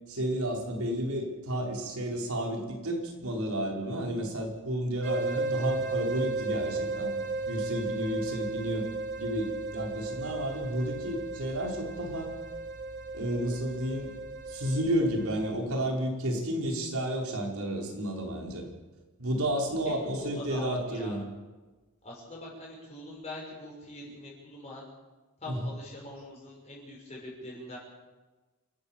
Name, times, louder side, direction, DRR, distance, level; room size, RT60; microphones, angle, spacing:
voice 1, 0.1-7.1 7.5-8.8 9.2-12.3 13.1-14.1 14.5-18.7 19.2-21.2 25.5-25.7, right 1 dB, 85° right, 0 dB, 5.4 m, -31 dB
sound 1, 5.0-15.5, right 3 dB, 55° right, 3.6 m, -34 dB
voice 2, 19.9-21.2 22.0-24.8 25.4-27.8, left 1 dB, 30° left, -3 dB, 6.2 m, -43 dB
28.0 x 14.0 x 7.6 m, 1.2 s
head